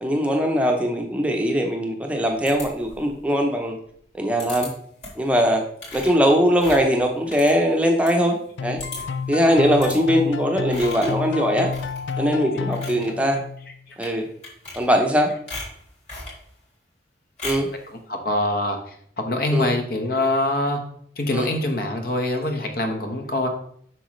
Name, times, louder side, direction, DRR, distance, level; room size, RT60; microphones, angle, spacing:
voice 1, 0.0-3.8 4.1-4.7 5.2-5.6 5.9-8.8 9.3-11.7 12.2-13.4 14.0-14.3 14.8-15.3 17.4-17.7 19.5-19.7 21.3-21.5, equal, 5° right, 2 dB, 0.7 m, -21 dB
sound 1, 2.5-3.2 4.4-4.7 5.0-5.3 5.8-8.2 8.5-8.6 8.8-9.2 9.8-10.0 10.7-11.2 11.7-12.2 12.6-13.1 13.9-14.1 14.4-15.1 15.5-16.4 17.4-17.7, left 2 dB, 40° left, 3.4 m, -37 dB
sound 2, 8.6-13.8, left 5 dB, 90° left, 0.4 m, -30 dB
voice 2, 18.1-20.8 21.2-23.5, left 1 dB, 55° left, 5 dB, 1.1 m, -24 dB
7.9 x 6.0 x 3.2 m, 0.63 s
head